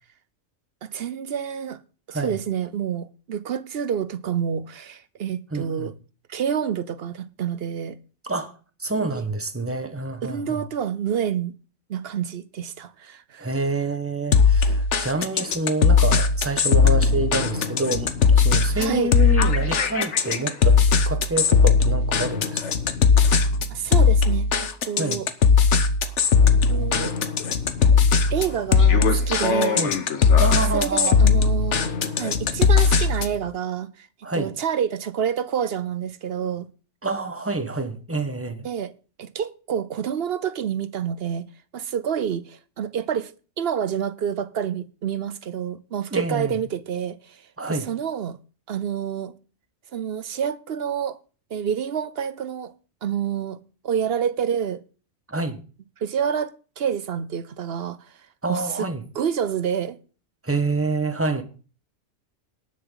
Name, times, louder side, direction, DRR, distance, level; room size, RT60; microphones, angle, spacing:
voice 1, 0.8-1.8 2.1-5.9 6.3-8.0 9.0-9.2 10.2-11.5 11.9-13.5 18.7-19.1 23.7-25.3 26.7-27.1 28.3-29.8 30.7-31.8 32.2-34.1 34.3-36.7 38.6-38.9 39.2-41.4 41.7-43.3 43.6-47.4 47.7-48.4 48.7-49.3 49.9-51.2 51.5-52.7 53.0-53.6 53.8-54.8 56.0-58.0 58.5-58.9 59.1-60.0, right 8 dB, 55° right, 0.9 m, -28 dB
voice 2, 5.5-5.9 8.3-8.5 8.8-10.6 13.4-22.6 25.0-25.2 29.7-29.9 30.4-31.2 34.2-34.5 37.0-38.7 46.1-46.6 47.6-47.9 55.3-55.6 58.4-59.0 60.4-61.4, right 2 dB, 10° right, 1.1 m, -27 dB
sound 1, 14.3-33.4, left 5 dB, 65° left, 1.3 m, -19 dB
18.5 x 7.0 x 3.9 m
omnidirectional pair, 1.3 m